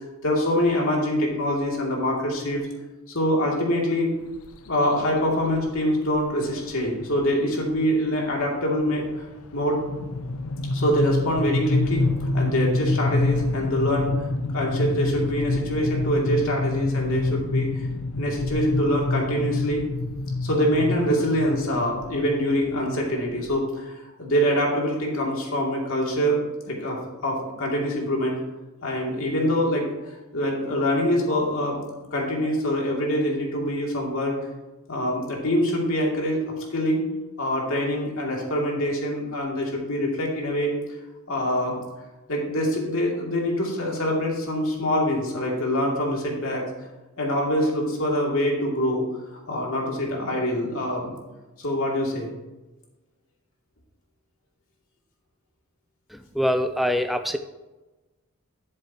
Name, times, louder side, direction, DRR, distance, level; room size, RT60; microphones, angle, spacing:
voice 1, 0.2-2.6 3.1-4.1 4.7-9.3 9.5-9.8 10.7-14.1 14.5-17.8 18.2-19.8 20.4-23.9 24.2-26.4 26.7-28.4 28.8-29.8 30.3-31.8 32.1-34.3 34.9-36.4 36.7-37.0 37.4-40.7 41.3-41.8 42.3-46.6 47.2-49.2 49.5-51.1 51.6-52.3, equal, 70° left, -2 dB, 2.4 m, -24 dB
sound 1, 4.4-4.7 5.6-5.7 6.1-6.2 6.5-6.8 7.2-23.5, left 2 dB, 85° left, 0.6 m, -27 dB
voice 2, 56.1-57.4, equal, ahead, 7 dB, 0.3 m, -24 dB
12.5 x 7.4 x 2.8 m, 1.1 s
head